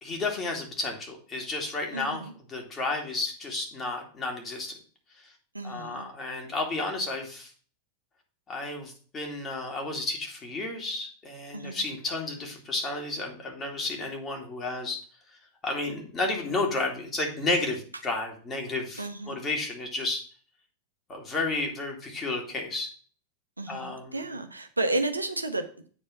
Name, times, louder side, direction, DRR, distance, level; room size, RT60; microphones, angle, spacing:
voice 1, 0.0-4.7 5.6-7.5 8.5-15.0 15.6-20.2 21.1-22.9 23.7-24.2, left 2 dB, 20° left, 1 dB, 2.5 m, -32 dB
voice 2, 1.9-2.3 5.5-6.1 11.5-11.9 19.0-19.4 23.6-25.9, right 2 dB, 80° right, 7 dB, 0.8 m, -32 dB
8.7 x 4.4 x 6.2 m, 0.43 s
figure-of-eight pair, 90°, 0 cm